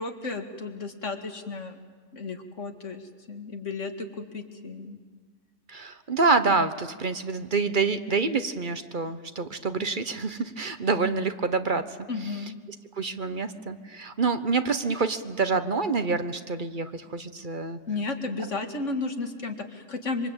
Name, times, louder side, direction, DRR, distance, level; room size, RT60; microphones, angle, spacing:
voice 1, 0.0-1.9 2.1-5.0 12.1-12.5 17.9-20.3, left 3 dB, 80° left, 5 dB, 2.4 m, -33 dB
voice 2, 5.7-12.4 12.9-17.8, right 4 dB, 45° right, 10 dB, 1.2 m, -27 dB
26.0 x 25.0 x 8.9 m, 1.5 s
omnidirectional pair, 1.2 m